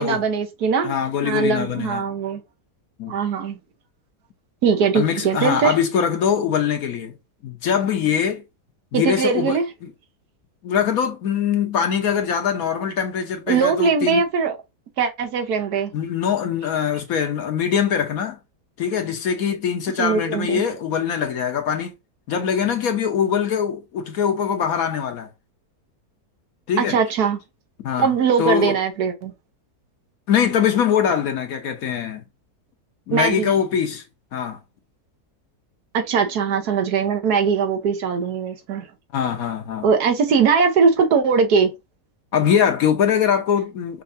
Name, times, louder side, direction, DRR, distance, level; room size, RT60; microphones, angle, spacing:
voice 1, 0.0-0.9 1.2-2.4 3.1-3.6 4.6-5.7 8.9-9.6 13.5-14.6 15.0-15.9 20.0-20.6 26.8-27.4 28.0-29.3 33.1-33.5 35.9-38.9 39.8-41.7, right 5 dB, 80° right, 1.4 m, -20 dB
voice 2, 0.8-2.1 3.0-3.1 4.9-7.1 7.4-8.4 8.9-9.6 10.6-14.2 15.9-18.4 18.8-21.9 22.3-25.3 26.7-27.0 27.8-28.1 28.4-28.8 30.3-32.2 33.1-34.0 34.3-34.6 39.1-39.9 42.3-44.0, left 8 dB, 65° left, 1.3 m, -22 dB
5.5 x 2.6 x 2.5 m
omnidirectional pair, 1.7 m